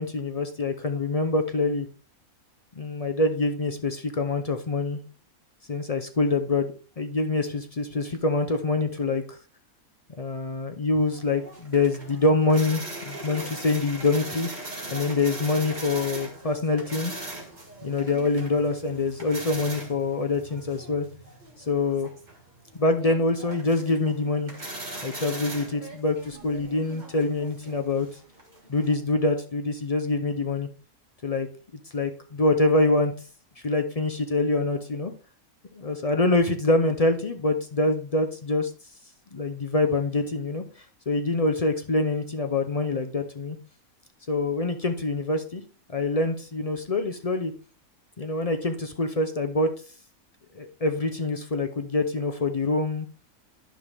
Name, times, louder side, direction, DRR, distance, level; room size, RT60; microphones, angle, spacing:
voice 1, 0.0-1.9 2.8-5.0 5.7-9.4 10.2-14.5 14.9-17.2 17.8-21.1 21.6-22.1 22.8-24.5 25.0-28.1 28.7-30.7 31.2-31.5 31.9-33.1 33.6-35.1 35.8-38.7 39.3-40.6 41.1-43.6 44.3-45.6 45.9-47.5 48.2-49.7 50.5-53.1, left 2 dB, 45° left, 6 dB, 0.5 m, -25 dB
sound 1, 11.1-29.0, right 1 dB, 30° right, 1.7 m, -40 dB
10.5 x 5.5 x 3.4 m, 0.37 s
omnidirectional pair, 1.5 m